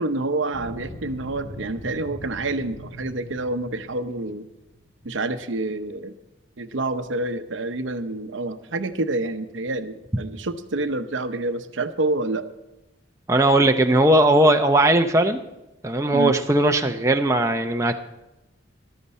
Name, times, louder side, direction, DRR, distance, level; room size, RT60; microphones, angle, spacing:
voice 1, 0.0-4.5 5.0-6.1 6.6-12.5 16.1-16.4, right 2 dB, 70° right, 9 dB, 0.8 m, -28 dB
sound 1, 0.5-5.3, equal, 30° left, 4.6 m, -40 dB
voice 2, 13.3-15.4 15.8-18.0, right 1 dB, 15° right, 4 dB, 0.6 m, -18 dB
13.5 x 12.5 x 4.3 m, 0.98 s
head